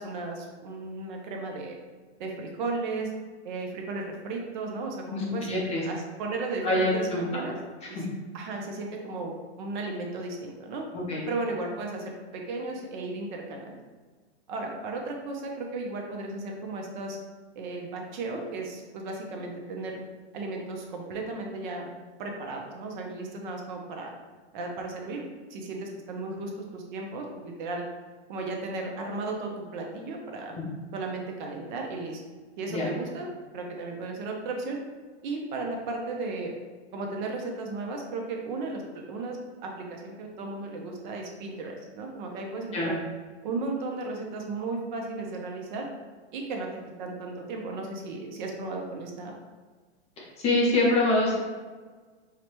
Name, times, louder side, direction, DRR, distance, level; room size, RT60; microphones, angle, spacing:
voice 1, 0.0-1.7 2.2-3.1 3.4-5.5 5.8-7.6 7.9-8.0 8.3-10.8 11.3-13.7 14.5-17.2 17.6-20.0 20.3-21.9 22.2-24.1 24.5-25.2 25.5-27.8 28.3-30.5 30.9-32.2 32.6-33.3 33.5-34.8 35.2-36.5 36.9-38.8 39.1-39.4 39.6-43.0 43.4-45.9 46.3-46.7 47.0-49.3, right 3 dB, 45° right, 1 dB, 0.6 m, -35 dB
voice 2, 5.1-5.8 6.6-7.2 8.0-8.1 10.9-11.3 30.6-30.7 32.7-32.9 42.7-42.9 50.2-51.4, left 2 dB, 20° left, -4 dB, 0.6 m, -25 dB
4.7 x 2.2 x 2.9 m, 1.4 s
hypercardioid pair, 135°, 34 cm